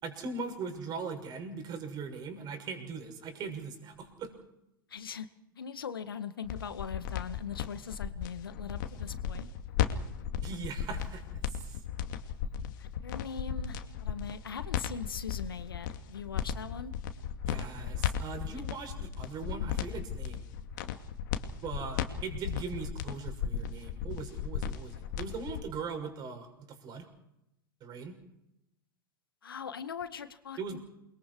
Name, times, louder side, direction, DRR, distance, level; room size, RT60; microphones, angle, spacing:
voice 1, 0.0-4.3 10.4-11.8 17.5-20.5 21.6-27.1 27.8-28.2 30.6-30.8, right 5 dB, 35° right, 6 dB, 6.3 m, -40 dB
voice 2, 4.9-5.3 5.6-9.5 12.8-16.9 29.4-30.8, left 7 dB, 80° left, 10 dB, 1.9 m, -41 dB
sound 1, 6.4-25.6, left 9 dB, 60° left, 2.4 m, -35 dB
29.0 x 22.5 x 4.8 m, 0.85 s
hypercardioid pair, 95°, 12 cm